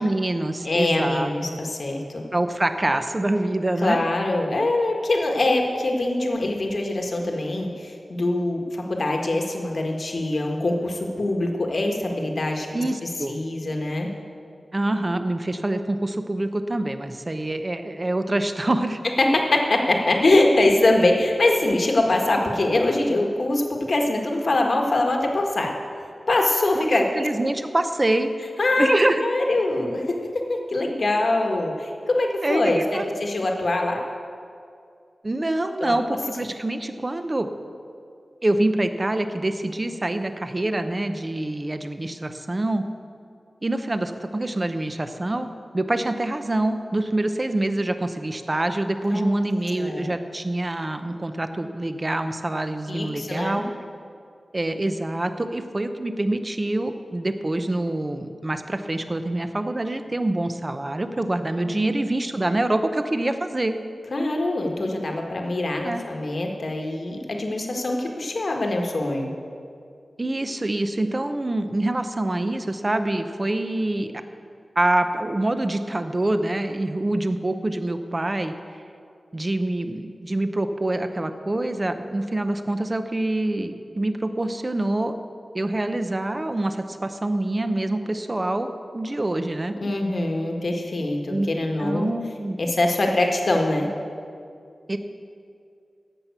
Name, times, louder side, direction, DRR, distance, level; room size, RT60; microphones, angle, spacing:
voice 1, 0.0-1.3 2.3-4.0 12.7-13.4 14.7-19.0 26.7-28.3 28.8-29.2 32.4-33.1 35.2-37.5 38.4-42.8 43.6-45.5 45.7-53.7 54.5-63.8 65.8-66.0 70.2-74.1 74.8-78.5 79.3-85.1 85.5-89.8 91.3-91.5 91.8-92.6 94.9-95.0, right 1 dB, 25° right, 8 dB, 0.8 m, -25 dB
voice 2, 0.6-2.2 3.8-12.8 13.3-14.1 19.2-25.7 26.3-27.1 28.6-30.1 30.5-34.0 35.8-36.2 49.0-49.4 49.8-50.1 52.9-53.6 61.7-61.9 64.1-69.3 89.8-92.1 92.6-93.9, left 2 dB, 55° left, 2 dB, 1.5 m, -23 dB
14.5 x 5.9 x 8.2 m, 2.4 s
wide cardioid pair, 105°, 0 cm